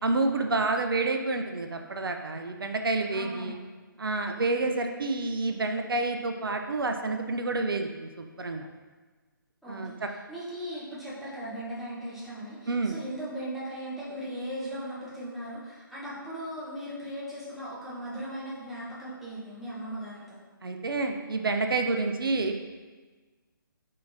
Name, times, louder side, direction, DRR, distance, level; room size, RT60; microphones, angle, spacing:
voice 1, 0.0-3.6 4.0-8.7 9.7-10.1 12.7-12.9 20.6-22.6, right 3 dB, 80° right, 4 dB, 0.5 m, -29 dB
voice 2, 3.1-3.6 4.4-4.7 9.6-20.4, equal, ahead, -11 dB, 0.8 m, -38 dB
4.6 x 3.7 x 2.6 m, 1.3 s
figure-of-eight pair, 150°, 12 cm